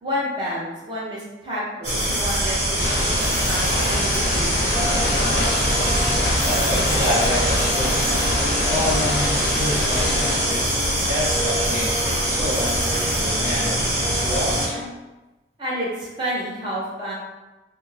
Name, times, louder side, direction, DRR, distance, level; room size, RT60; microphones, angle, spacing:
voice 1, 0.0-4.9 15.6-17.1, equal, 25° right, -8 dB, 0.8 m, -30 dB
sound 1, 1.8-14.7, right 1 dB, 80° right, 1.0 m, -23 dB
sound 2, 2.8-10.4, left 1 dB, 55° left, 0.5 m, -25 dB
sound 3, 4.7-14.8, left 1 dB, ahead, 1.0 m, -31 dB
voice 2, 6.0-8.0 8.5-10.7 11.1-14.8, left 1 dB, 55° right, -9 dB, 1.4 m, -28 dB
2.6 x 2.2 x 3.1 m, 1.1 s
head